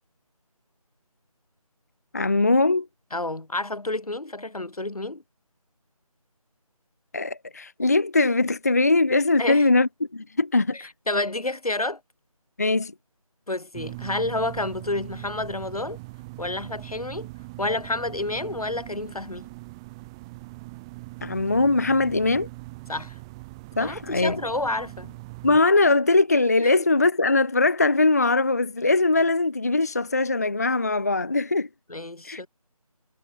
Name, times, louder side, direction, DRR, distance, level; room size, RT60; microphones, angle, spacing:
voice 1, 2.1-2.9 7.1-10.9 12.6-12.9 21.2-22.5 23.8-24.4 25.4-31.7 32.2-32.4, left 3 dB, 25° left, 0.7 m, -21 dB
voice 2, 3.1-5.2 9.4-9.7 10.7-12.0 13.5-16.0 16.4-17.3 17.6-19.5 22.9-23.1 23.8-25.2 26.6-26.8 31.9-32.5, left 2 dB, 75° left, 4.7 m, -29 dB
sound 1, 13.7-25.6, right 24 dB, 10° right, 3.0 m, -41 dB
figure-of-eight pair, 170°, 19 cm